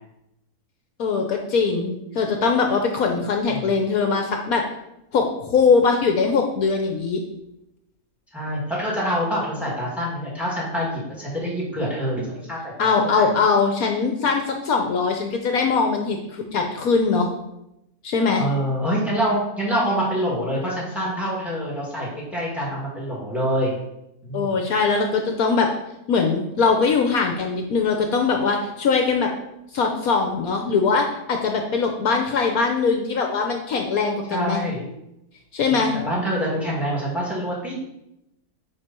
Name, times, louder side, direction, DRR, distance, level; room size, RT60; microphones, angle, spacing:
voice 1, 1.0-4.6 5.1-7.2 12.8-17.3 18.0-18.4 24.3-25.7 26.1-29.3 29.7-34.6 35.5-35.9, left 4 dB, 70° left, 3 dB, 1.3 m, -21 dB
voice 2, 8.3-13.3 18.4-23.8 24.2-24.6 34.3-34.8 35.7-37.7, equal, ahead, -4 dB, 2.6 m, -26 dB
10.0 x 4.3 x 4.5 m, 0.85 s
omnidirectional pair, 1.6 m